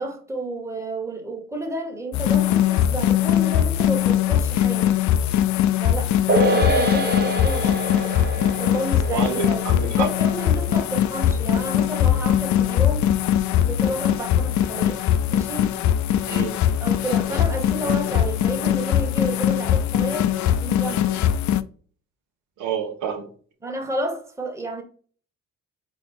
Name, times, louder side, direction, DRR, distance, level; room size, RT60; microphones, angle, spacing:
voice 1, 0.0-5.0 5.7-7.8 8.5-13.1 13.6-15.0 15.3-15.7 16.8-20.3 20.6-21.2 23.6-24.8, right 1 dB, 10° right, 1.3 m, -31 dB
sound 1, 2.1-21.6, left 11 dB, 70° left, 0.5 m, -21 dB
sound 2, 6.3-13.0 13.2-13.3, right 1 dB, 30° right, 1.1 m, -27 dB
voice 2, 9.1-10.1 16.3-16.6 22.6-23.3, right 7 dB, 85° right, 1.3 m, -28 dB
4.1 x 3.8 x 3.5 m
cardioid pair, 90°, 30 cm